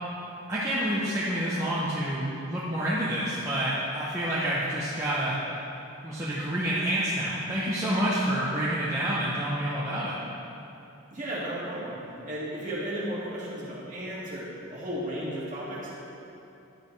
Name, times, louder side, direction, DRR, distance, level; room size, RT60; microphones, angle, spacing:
voice 1, 0.5-5.4 6.0-10.2, right 1 dB, 15° right, -9 dB, 0.8 m, -28 dB
voice 2, 11.1-12.0 12.3-15.9, equal, 35° right, -8 dB, 2.1 m, -34 dB
10.5 x 7.7 x 3.2 m, 2.8 s
head